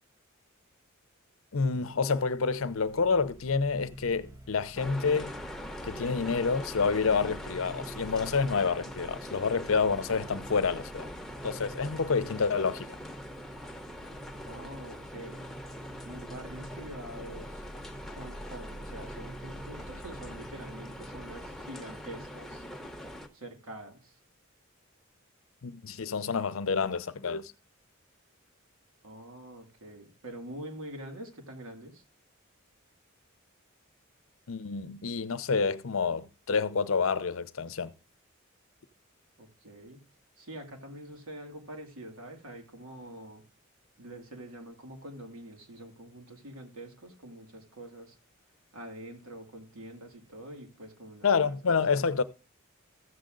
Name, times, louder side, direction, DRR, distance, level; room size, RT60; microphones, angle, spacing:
voice 1, 1.5-5.3 5.8-11.1 11.4-13.0 25.6-27.5 34.5-37.9 51.2-52.2, left 5 dB, 70° left, 0.6 m, -28 dB
sound 1, 2.8-21.6, right 1 dB, 15° right, 0.5 m, -48 dB
sound 2, 4.8-23.3, equal, ahead, 0.9 m, -43 dB
voice 2, 14.4-15.4 16.0-17.6 18.1-22.7 23.3-24.2 29.0-32.0 39.4-40.0 40.4-43.4 44.0-48.2 48.7-51.7, right 1 dB, 85° right, 2.5 m, -45 dB
14.0 x 7.5 x 3.8 m
head